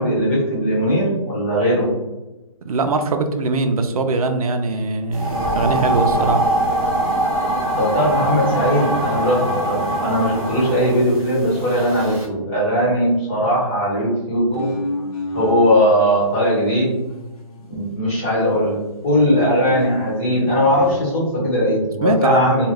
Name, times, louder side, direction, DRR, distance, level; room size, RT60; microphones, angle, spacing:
voice 1, 0.0-1.9 7.7-14.7 15.3-16.9 17.7-22.7, equal, 20° left, -6 dB, 1.1 m, -19 dB
voice 2, 2.6-6.4 22.0-22.7, right 3 dB, 85° right, 6 dB, 0.5 m, -21 dB
sound 1, 5.1-12.2, right 1 dB, 15° right, 0.8 m, -23 dB
sound 2, 14.5-15.8 16.3-18.1 18.3-21.0, left 1 dB, 85° left, 0.8 m, -32 dB
2.3 x 2.2 x 3.2 m, 1.0 s
hypercardioid pair, 165°, 18 cm